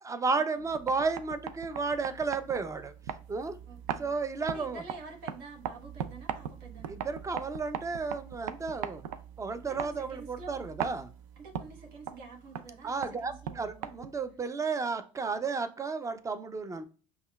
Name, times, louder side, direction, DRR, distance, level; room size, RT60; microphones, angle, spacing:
voice 1, 0.0-2.9 3.3-3.6 4.0-4.8 6.9-9.0 9.4-11.1 12.8-16.8, right 4 dB, 20° right, 0.5 m, -33 dB
sound 1, 0.6-14.3, right 9 dB, 90° right, 0.4 m, -41 dB
voice 2, 3.7-4.1 4.5-7.0 9.6-10.7 11.4-14.0, right 3 dB, 65° right, 1.0 m, -48 dB
5.4 x 2.3 x 2.3 m
supercardioid pair, 90°, 17 cm